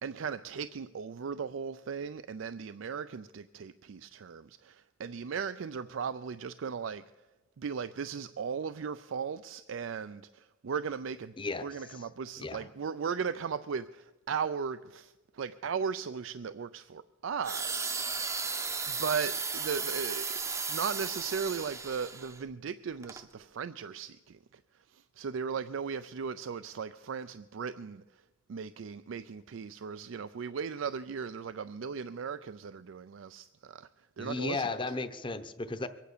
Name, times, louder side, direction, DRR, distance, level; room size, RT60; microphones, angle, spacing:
voice 1, 0.0-7.1 7.6-11.3 11.6-18.1 18.9-20.4 20.7-28.2 28.5-34.9, right 6 dB, 85° right, 0.4 m, -37 dB
voice 2, 11.4-11.7 12.4-12.7 34.2-35.9, left 3 dB, 25° left, 0.8 m, -34 dB
sound 1, 17.4-22.4 23.0-23.2, right 4 dB, 15° right, 0.6 m, -35 dB
23.5 x 9.2 x 6.7 m
head